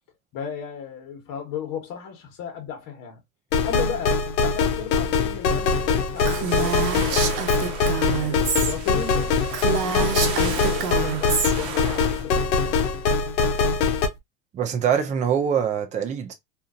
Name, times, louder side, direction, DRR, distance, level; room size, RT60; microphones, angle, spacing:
voice 1, 0.3-3.2 3.6-7.5 8.0-12.8, left 7 dB, 40° left, 1.2 m, -35 dB
sound 1, 3.5-14.1, left 4 dB, 85° left, 0.8 m, -23 dB
sound 2, 6.1-12.2, right 5 dB, 40° right, 1.0 m, -36 dB
Female speech woman speaking, 6.2-8.7 9.1-9.2 9.5-11.5, right 6 dB, 80° right, 0.9 m, -27 dB
voice 2, 14.5-16.3, right 8 dB, 15° right, 0.4 m, -24 dB
2.6 x 2.5 x 2.5 m
hypercardioid pair, 105°, 48 cm